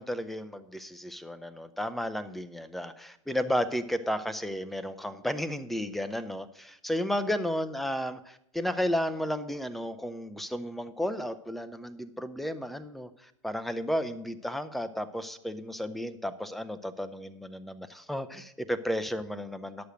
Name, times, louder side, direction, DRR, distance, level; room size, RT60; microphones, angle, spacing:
voice 1, 0.0-19.9, equal, ahead, 11 dB, 0.5 m, -33 dB
10.0 x 6.5 x 6.3 m, 0.76 s
figure-of-eight pair, 95°, 16 cm